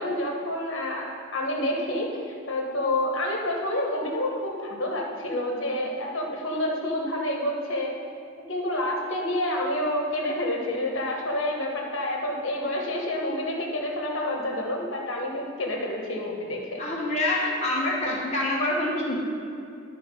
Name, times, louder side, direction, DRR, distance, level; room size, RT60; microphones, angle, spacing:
voice 1, 0.0-2.1 2.5-7.9 8.5-16.8, left 1 dB, 65° left, 0 dB, 1.3 m, -28 dB
voice 2, 16.8-19.2, left 1 dB, 30° left, -4 dB, 1.0 m, -26 dB
11.5 x 4.3 x 5.4 m, 2.5 s
head